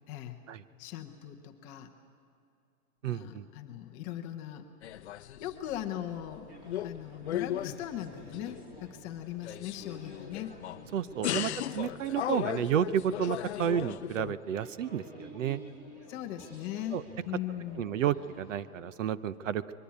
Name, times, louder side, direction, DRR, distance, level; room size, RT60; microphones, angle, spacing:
voice 1, 0.1-0.4 0.8-1.9 3.0-4.7 5.4-6.5 6.8-10.5 11.3-12.0 16.1-17.9, left 12 dB, 15° left, 4 dB, 0.8 m, -39 dB
voice 2, 3.0-3.4 10.9-15.6 16.9-17.0 17.8-19.6, right 9 dB, 60° right, 15 dB, 0.8 m, -31 dB
sound 1, 4.8-5.9 6.2-7.0 7.2-8.8 9.3-10.8 11.2-14.3, left 11 dB, 50° left, 0.6 m, -36 dB
sound 2, 6.5-18.6, equal, 20° right, 3.4 m, -52 dB
22.0 x 22.0 x 8.5 m, 2.5 s
hypercardioid pair, 160°, 44 cm